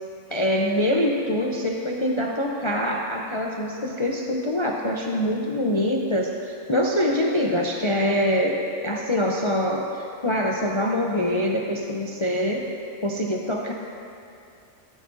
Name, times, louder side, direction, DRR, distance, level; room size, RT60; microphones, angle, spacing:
voice 1, 0.3-12.7 13.0-13.7, left 1 dB, 35° left, -1 dB, 0.4 m, -24 dB
13.0 x 13.0 x 2.6 m, 2.6 s
omnidirectional pair, 1.4 m